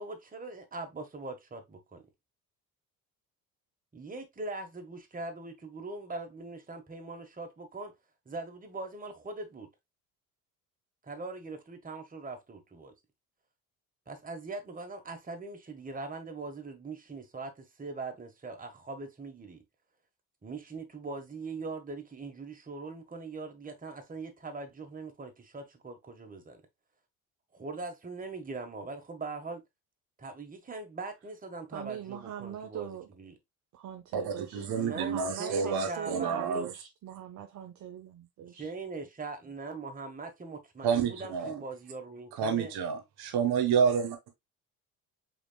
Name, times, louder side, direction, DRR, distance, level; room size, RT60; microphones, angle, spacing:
voice 1, 0.0-2.0 3.9-7.9 8.2-9.7 11.0-12.9 14.1-19.6 20.4-26.6 27.5-29.6 30.2-33.4 34.7-36.7 38.5-42.7, right 3 dB, 20° right, 1.4 m, -41 dB
voice 2, 31.7-33.1 33.7-34.7 34.9-38.7, right 10 dB, 40° right, 0.7 m, -41 dB
voice 3, 34.1-36.7 40.8-41.5 42.4-44.2, right 6 dB, 60° right, 1.3 m, -29 dB
5.0 x 3.8 x 2.3 m
hypercardioid pair, 55°, 44 cm